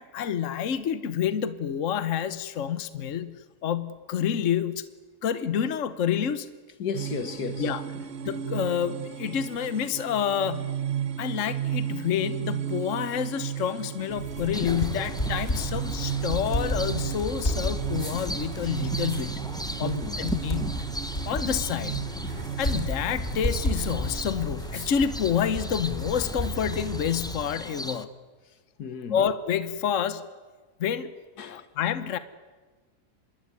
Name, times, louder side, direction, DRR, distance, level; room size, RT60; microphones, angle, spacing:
voice 1, 0.0-4.9 5.2-6.5 7.6-7.8 8.2-10.7 11.2-19.4 19.8-20.8 21.3-22.0 22.6-28.1 29.1-30.3 30.8-31.1 31.5-32.2, left 8 dB, 55° left, 1.3 m, -28 dB
voice 2, 6.8-7.7 19.8-20.2 28.8-29.2 31.4-31.7, left 6 dB, 80° left, 1.9 m, -33 dB
sound 1, 6.9-24.3, right 10 dB, 45° right, 1.1 m, -34 dB
sound 2, 14.1-27.6, equal, 25° left, 5.3 m, -33 dB
sound 3, 14.5-28.0, equal, 5° left, 0.8 m, -39 dB
26.0 x 21.0 x 9.7 m
omnidirectional pair, 1.6 m